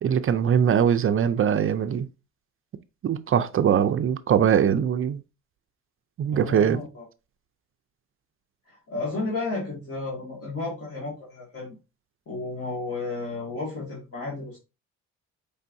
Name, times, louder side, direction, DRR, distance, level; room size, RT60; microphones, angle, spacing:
voice 1, 0.0-2.1 3.0-5.2 6.2-6.8, right 8 dB, 45° right, 0.5 m, -22 dB
voice 2, 6.3-7.1 8.7-11.8 12.3-14.6, left 3 dB, 50° left, 2.2 m, -33 dB
5.5 x 3.4 x 2.7 m
cardioid pair, 90°, 30 cm